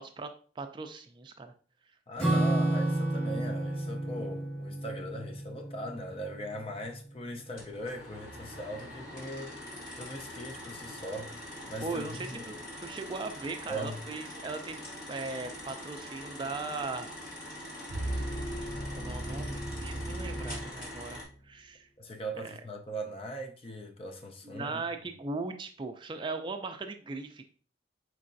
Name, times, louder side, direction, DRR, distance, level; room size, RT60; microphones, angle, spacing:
voice 1, 0.0-1.5 11.8-14.8 15.1-17.1 18.1-18.3 18.9-21.9 22.4-22.5 24.4-27.4, right 3 dB, 25° right, 0.3 m, -38 dB
voice 2, 2.1-9.5 9.9-11.4 11.7-12.5 13.7-14.0 22.0-24.8, right 1 dB, 30° left, 0.5 m, -40 dB
Acoustic guitar / Strum, 2.2-7.0, right 1 dB, 5° left, 1.7 m, -31 dB
sound 1, 7.6-21.2, left 1 dB, 50° left, 1.5 m, -44 dB
sound 2, 17.9-21.4, right 1 dB, 80° left, 1.3 m, -36 dB
4.6 x 4.2 x 2.5 m
head